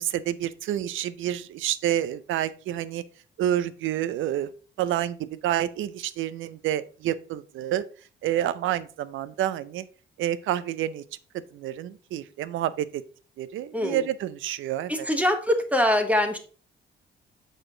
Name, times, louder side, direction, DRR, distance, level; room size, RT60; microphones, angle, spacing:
voice 1, 0.0-3.0 3.4-4.5 4.8-7.8 8.2-9.8 10.2-11.0 11.5-13.0 13.4-14.9, right 12 dB, 80° right, 16 dB, 0.5 m, -28 dB
voice 2, 13.7-14.0 14.9-16.4, left 1 dB, 5° right, 5 dB, 1.1 m, -23 dB
6.5 x 4.9 x 3.8 m, 0.39 s
cardioid pair, 90°, 20 cm